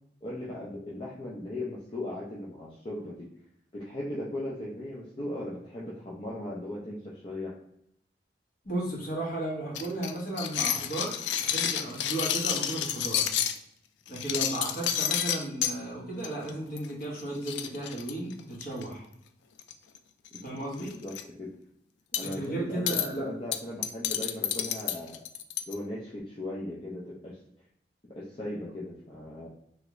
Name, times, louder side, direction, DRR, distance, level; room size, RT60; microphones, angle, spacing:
voice 1, 0.2-3.3 3.7-7.5 20.3-20.4 20.8-21.5 22.2-25.2 25.7-27.4 28.2-29.5, left 1 dB, 30° left, -6 dB, 0.6 m, -38 dB
voice 2, 8.6-13.3 14.1-19.0 20.4-20.9 22.2-23.3, right 1 dB, 55° left, -4 dB, 1.3 m, -34 dB
sound 1, 9.8-13.6 14.1-15.7 16.2-16.5 16.8-16.9 17.2-17.3 17.5-18.8 19.6-20.0 20.3-20.4 20.8-21.2 22.1-22.4 22.9-23.1 23.5-25.7, left 10 dB, 85° left, 0.3 m, -30 dB
3.2 x 2.4 x 3.0 m, 0.74 s
head